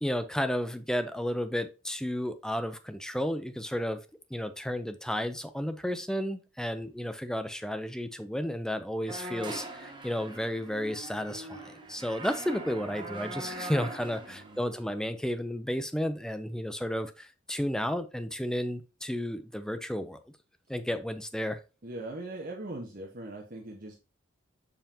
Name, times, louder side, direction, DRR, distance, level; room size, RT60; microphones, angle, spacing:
voice 1, 0.0-4.0 4.3-20.2 20.7-21.6, equal, 5° left, 10 dB, 0.6 m, -32 dB
sound 1, 9.1-14.8, right 2 dB, 25° right, 1.2 m, -42 dB
voice 2, 14.3-14.6 21.8-24.0, right 2 dB, 45° right, -1 dB, 1.3 m, -40 dB
6.9 x 5.6 x 2.9 m, 0.29 s
head